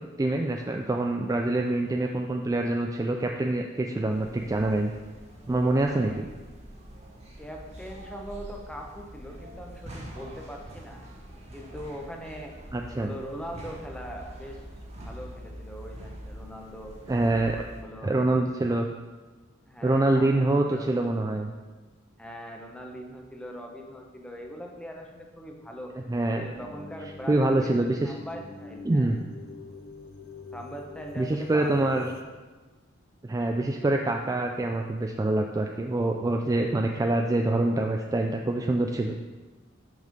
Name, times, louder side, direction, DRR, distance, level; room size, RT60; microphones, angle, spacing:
voice 1, 0.2-4.9 5.5-6.3 12.7-13.1 17.1-17.5 18.0-18.9 19.8-21.5 26.1-26.5 27.3-28.0 28.9-29.2 31.2-32.1 33.2-39.2, right 2 dB, 20° right, 3 dB, 0.3 m, -25 dB
sound 1, 4.1-17.8, equal, 35° right, 1.4 m, -44 dB
voice 2, 7.4-11.0 11.5-12.6 12.9-14.6 15.0-17.0 17.3-18.1 19.7-20.9 22.2-25.9 26.4-29.2 30.5-32.1, equal, 5° left, 1 dB, 0.8 m, -41 dB
sound 2, 26.5-32.2, left 3 dB, 50° left, 0.6 m, -44 dB
6.4 x 5.4 x 5.1 m, 1.3 s
head